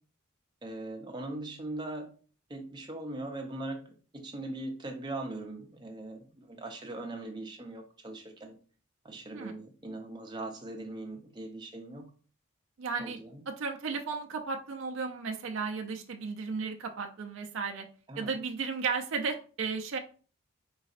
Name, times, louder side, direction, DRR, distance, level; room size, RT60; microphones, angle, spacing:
voice 1, 0.6-2.1 2.5-8.5 9.0-12.1 13.0-13.4 18.1-18.3, right 2 dB, 20° right, 2 dB, 0.6 m, -40 dB
voice 2, 12.8-13.2 13.5-17.9 18.2-20.0, right 5 dB, 60° right, 3 dB, 0.4 m, -34 dB
4.0 x 3.9 x 2.5 m, 0.39 s
head